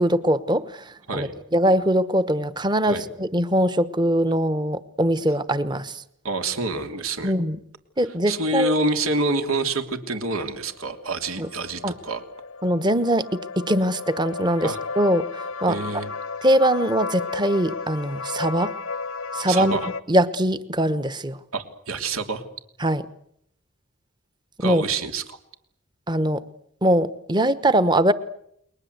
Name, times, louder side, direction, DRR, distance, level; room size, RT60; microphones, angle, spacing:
voice 1, 0.0-6.0 7.2-7.6 8.0-8.7 11.4-11.5 11.8-11.9 12.6-15.8 16.4-18.8 19.3-19.8 20.1-21.4 22.8-23.0 24.6-24.8 26.1-26.4 26.8-28.1, right 1 dB, 20° right, 14 dB, 1.1 m, -22 dB
voice 2, 6.2-7.3 8.3-12.2 14.6-14.8 15.7-16.1 19.5-19.9 21.5-22.4 24.6-25.4, right 2 dB, 85° right, 6 dB, 3.2 m, -27 dB
sound 1, 10.7-20.0, left 4 dB, 75° left, 1.0 m, -33 dB
30.0 x 22.0 x 8.1 m, 0.73 s
head